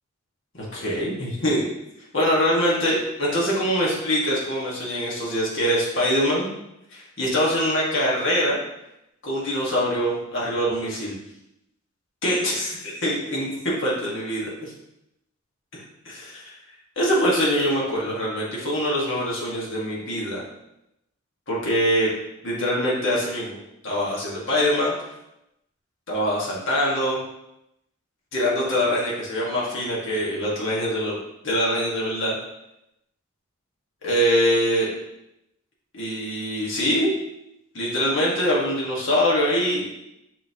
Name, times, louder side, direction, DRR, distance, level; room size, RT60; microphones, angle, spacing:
voice 1, 0.6-1.7 2.1-6.6 6.9-8.6 9.2-11.2 12.2-14.7 15.7-16.6 17.0-20.4 21.5-22.1 22.4-23.6 23.8-24.9 26.1-27.2 28.3-31.2 31.4-32.4 34.0-34.9 35.9-37.1 37.7-39.9, equal, 60° left, -5 dB, 1.8 m, -24 dB
5.9 x 5.5 x 2.9 m, 0.85 s
head